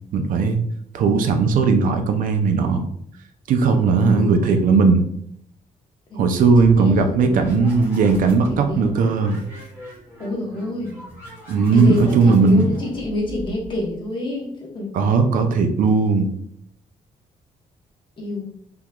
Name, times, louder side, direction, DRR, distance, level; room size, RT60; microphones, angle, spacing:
voice 1, 0.1-0.6 0.9-2.9 3.5-5.0 6.2-9.5 11.5-12.7 14.9-16.3, right 4 dB, 70° right, 6 dB, 0.4 m, -17 dB
voice 2, 3.9-4.4 6.1-6.2 6.7-7.7 8.5-8.8 10.2-10.9 11.7-15.0 18.2-18.5, left 2 dB, 35° left, -2 dB, 0.9 m, -28 dB
sound 1, 6.5-14.0, equal, 15° right, 1.4 m, -40 dB
3.5 x 2.9 x 2.2 m, 0.68 s
cardioid pair, 150°, 14 cm